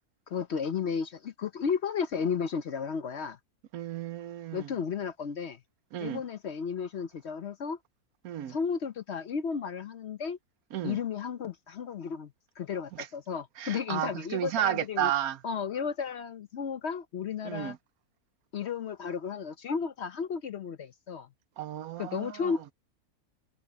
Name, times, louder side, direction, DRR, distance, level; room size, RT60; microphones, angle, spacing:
voice 1, 0.3-3.4 4.5-5.6 6.0-7.8 8.5-10.4 10.8-15.1 15.4-17.7 18.5-21.3 22.0-22.7, left 6 dB, 55° left, 0.8 m, -33 dB
voice 2, 3.7-4.7 5.9-6.2 8.2-8.6 10.7-11.0 12.9-13.1 13.6-15.4 17.4-17.8 21.6-22.5, right 11 dB, 75° right, 1.2 m, -32 dB
omnidirectional pair, 1.6 m